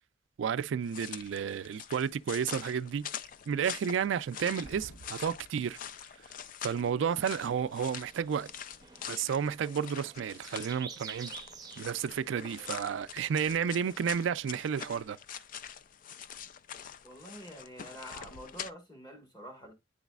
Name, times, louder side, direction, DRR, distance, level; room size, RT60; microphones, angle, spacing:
voice 1, 0.4-3.1 3.5-5.8 6.6-8.5 9.1-11.3 11.8-15.2, right 7 dB, 70° right, 0.3 m, -31 dB
sound 1, 0.8-18.7, left 8 dB, 45° left, 0.3 m, -45 dB
sound 2, 3.4-3.5 3.7-3.8 4.1-7.1 7.4-9.1, right 2 dB, 80° left, 1.4 m, -55 dB
sound 3, 7.1-13.4, right 6 dB, 20° right, 0.6 m, -50 dB
voice 2, 17.0-19.7, right 1 dB, 20° left, 1.5 m, -47 dB
10.0 x 4.0 x 2.3 m
head